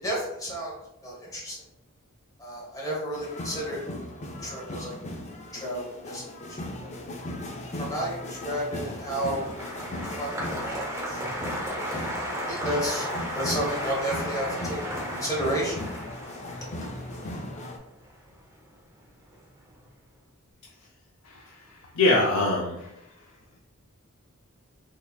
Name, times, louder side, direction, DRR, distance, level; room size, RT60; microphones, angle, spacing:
voice 1, 0.0-0.7 1.0-1.6 2.4-3.8 4.4-4.9 5.5-6.3 6.8-6.9 7.8-9.5 9.7-9.9 10.2-11.2 12.5-13.1 13.3-14.8 15.2-15.8, right 1 dB, 15° left, -4 dB, 1.1 m, -31 dB
sound 1, 3.1-17.8, left 1 dB, 35° left, 0.4 m, -37 dB
Applause, 8.6-19.0 19.3-19.9, equal, 15° right, 0.7 m, -35 dB
voice 2, 21.2-22.9, left 2 dB, 85° left, -3 dB, 0.5 m, -24 dB
3.6 x 3.2 x 2.3 m, 0.85 s
head